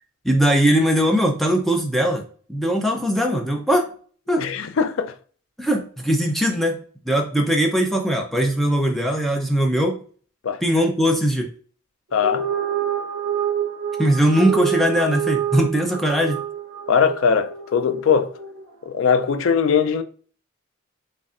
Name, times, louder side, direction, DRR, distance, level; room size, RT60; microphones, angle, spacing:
voice 1, 0.2-2.2 2.5-3.9 4.3-4.4 5.6-6.8 7.1-10.0 10.6-11.5 14.0-16.4, equal, ahead, 0.4 m, -20 dB
voice 2, 4.4-5.1 10.4-10.6 12.1-12.5 16.9-18.3 18.8-20.0, left 6 dB, 60° left, 0.4 m, -20 dB
sound 1, 12.1-18.7, right 8 dB, 50° right, 1.0 m, -27 dB
4.0 x 3.3 x 2.4 m
head